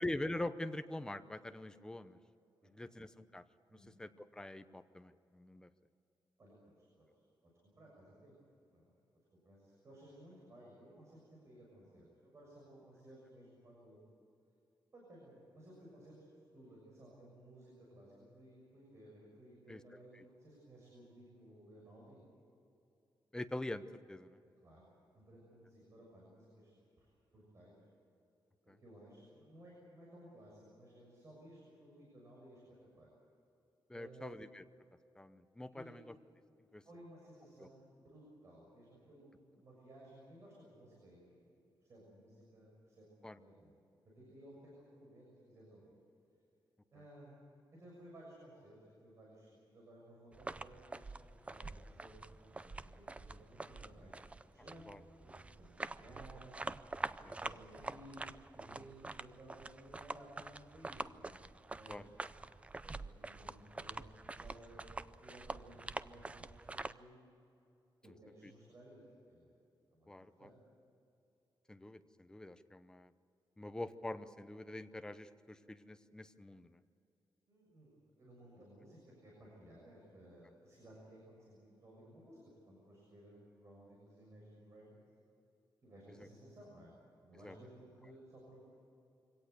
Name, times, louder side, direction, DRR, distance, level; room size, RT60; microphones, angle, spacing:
voice 1, 0.0-2.2 2.7-3.4 3.7-5.7 19.7-19.8 20.1-20.2 23.3-24.4 28.7-28.8 33.9-34.6 35.2-36.1 36.7-36.8 37.6-37.7 43.2-43.4 54.9-55.0 57.2-57.3 61.9-62.3 68.4-68.5 70.1-70.5 71.7-73.1 73.6-76.8 86.2-86.3 87.4-87.6, left 1 dB, 10° left, 10 dB, 0.8 m, -44 dB
voice 2, 2.6-2.9 3.7-4.0 6.4-7.2 7.6-8.4 8.7-8.9 9.3-14.1 14.9-22.2 24.6-26.7 27.0-27.8 28.6-32.6 32.9-33.1 33.9-34.4 35.7-36.0 36.8-43.1 43.4-43.7 44.0-45.9 46.9-47.4 47.7-54.1 54.5-56.6 57.2-61.4 61.7-62.4 62.8-67.2 68.0-69.5 69.9-70.6 77.5-82.4 82.7-85.1 85.8-86.9 87.2-87.7 88.0-88.6, right 1 dB, 35° right, -4 dB, 6.7 m, -58 dB
sound 1, 50.3-66.9, right 3 dB, 15° right, 0.5 m, -46 dB
24.5 x 17.5 x 8.1 m, 2.7 s
wide cardioid pair, 165°, 8 cm